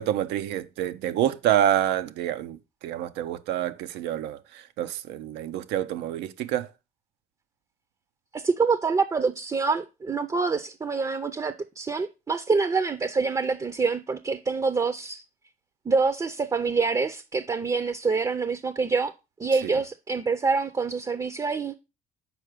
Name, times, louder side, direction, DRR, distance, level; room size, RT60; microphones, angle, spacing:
voice 1, 0.0-6.7 19.6-19.7, right 11 dB, 90° right, 0.7 m, -27 dB
voice 2, 8.3-15.2 15.9-19.1 19.4-21.7, right 4 dB, 20° right, 0.6 m, -26 dB
6.2 x 4.5 x 5.0 m
cardioid pair, 110°, 17 cm